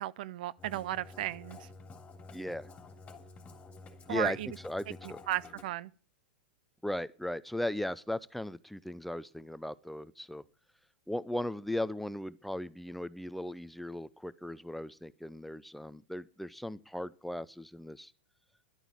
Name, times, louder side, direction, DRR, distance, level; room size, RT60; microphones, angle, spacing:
voice 1, 0.0-1.7 4.1-4.5 5.3-5.9, right 14 dB, 60° right, 0.6 m, -35 dB
Musical instrument, 0.6-5.6, left 3 dB, 20° left, 3.0 m, -50 dB
voice 2, 2.3-2.7 4.1-4.4 4.6-5.2 6.8-10.4 11.1-18.1, left 1 dB, ahead, 0.6 m, -37 dB
11.5 x 9.0 x 8.7 m
hypercardioid pair, 100°, 5 cm